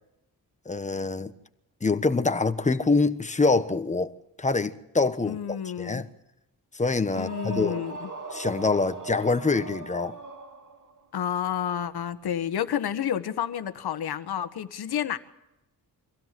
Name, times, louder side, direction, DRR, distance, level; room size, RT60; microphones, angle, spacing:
voice 1, 0.6-1.3 1.8-6.1 6.7-7.8 8.3-10.2, left 3 dB, 20° left, 1.2 m, -25 dB
voice 2, 5.2-6.0 7.1-8.1 11.1-15.2, left 9 dB, 75° left, 1.5 m, -30 dB
sound 1, 7.1-11.0, right 3 dB, 50° right, 3.0 m, -39 dB
25.0 x 16.5 x 7.7 m
cardioid pair, 110°, 38 cm